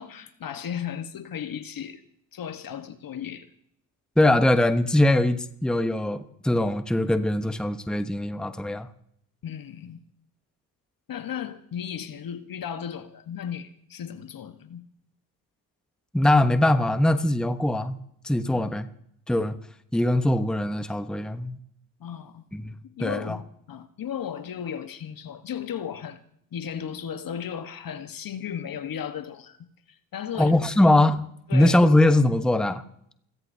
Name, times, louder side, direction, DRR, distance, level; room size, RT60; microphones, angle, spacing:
voice 1, 0.0-2.0 2.3-3.5 9.4-10.0 11.1-14.8 18.5-18.7 22.0-22.4 22.8-26.2 26.5-29.6 29.9-30.6 31.5-31.8, left 8 dB, 50° left, 1.3 m, -35 dB
voice 2, 4.2-8.9 16.1-18.0 18.2-18.9 19.3-19.6 19.9-21.6 22.5-23.4 30.4-31.2 31.5-32.8, left 1 dB, ahead, 0.9 m, -22 dB
29.0 x 14.0 x 2.8 m
supercardioid pair, 60°, 44 cm